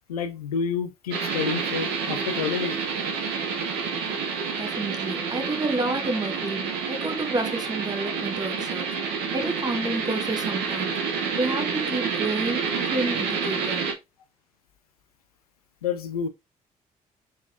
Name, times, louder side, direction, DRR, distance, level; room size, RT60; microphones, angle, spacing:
voice 1, 0.1-2.8 15.8-16.3, left 7 dB, 85° left, 0.4 m, -29 dB
sound 1, 1.1-13.9, right 5 dB, 60° right, 1.0 m, -29 dB
voice 2, 4.5-11.1 11.4-13.9, right 2 dB, 20° right, 0.9 m, -30 dB
3.9 x 3.7 x 2.4 m
figure-of-eight pair, 40°, 19 cm